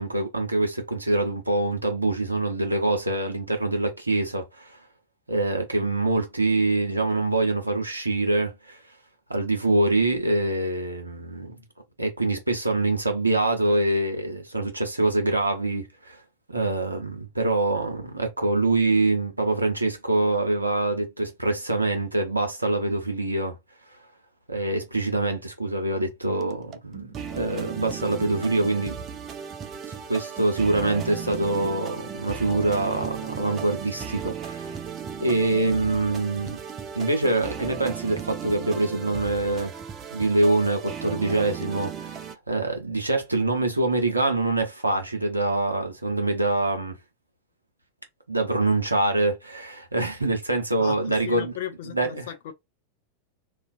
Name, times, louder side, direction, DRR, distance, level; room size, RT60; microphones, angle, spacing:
voice 1, 0.0-4.8 5.3-8.8 9.3-11.6 12.0-16.2 16.5-23.6 24.5-29.0 29.9-34.8 35.2-36.6 36.9-39.7 40.1-47.0 48.3-51.5 51.9-52.3, right 2 dB, 85° right, 0.7 m, -25 dB
sound 1, 26.4-42.4, right 7 dB, 30° right, 0.4 m, -36 dB
voice 2, 50.8-52.5, left 11 dB, 55° left, 0.4 m, -36 dB
2.4 x 2.3 x 2.5 m
figure-of-eight pair, 90°, 0 cm